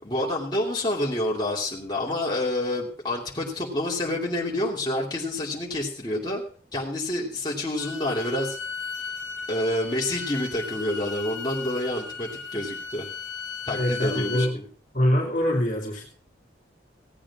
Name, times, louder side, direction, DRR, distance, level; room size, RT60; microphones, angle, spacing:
voice 1, 0.0-6.4 6.7-8.6 9.5-13.1 13.7-14.7, left 1 dB, 25° left, -4 dB, 2.8 m, -28 dB
Bowed string instrument, 7.8-14.5, left 5 dB, 80° left, 2.0 m, -36 dB
voice 2, 13.7-14.6 14.9-16.1, equal, 45° left, -1 dB, 2.5 m, -24 dB
16.5 x 8.7 x 4.8 m, 0.42 s
head